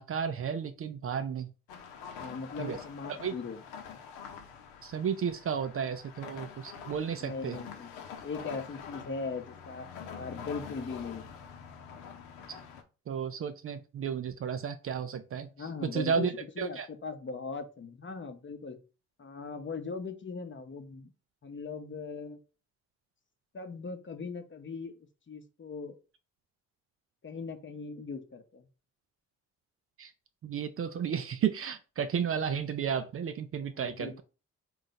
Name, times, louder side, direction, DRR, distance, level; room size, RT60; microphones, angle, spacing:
voice 1, 0.0-1.5 2.6-2.8 3.1-3.3 4.8-7.6 12.5-12.6 13.1-16.9 30.0-30.1 30.4-34.2, right 7 dB, 35° right, 10 dB, 0.5 m, -33 dB
sound 1, 1.7-12.8, left 7 dB, 75° left, 0.8 m, -46 dB
voice 2, 2.2-3.6 7.2-8.0 8.2-11.3 15.5-16.3 16.6-18.8 19.2-21.1 21.4-22.4 23.5-24.9 25.3-25.9 27.2-28.7 33.7-34.2, left 4 dB, 30° left, 7 dB, 0.8 m, -39 dB
3.7 x 2.5 x 4.0 m, 0.33 s
hypercardioid pair, 45°, 37 cm